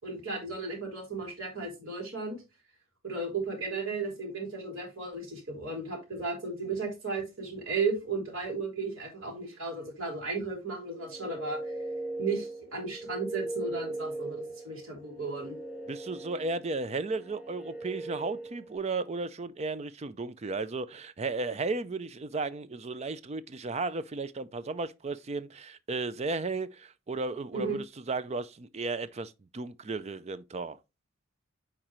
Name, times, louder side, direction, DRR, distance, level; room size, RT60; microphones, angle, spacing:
voice 1, 0.0-2.4 3.0-11.7 12.2-15.6 27.5-27.8, right 4 dB, 70° right, 3.5 m, -35 dB
sound 1, 10.9-18.8, right 2 dB, 5° right, 1.3 m, -39 dB
voice 2, 15.9-30.8, right 3 dB, 30° right, 0.4 m, -34 dB
8.8 x 4.5 x 3.1 m
head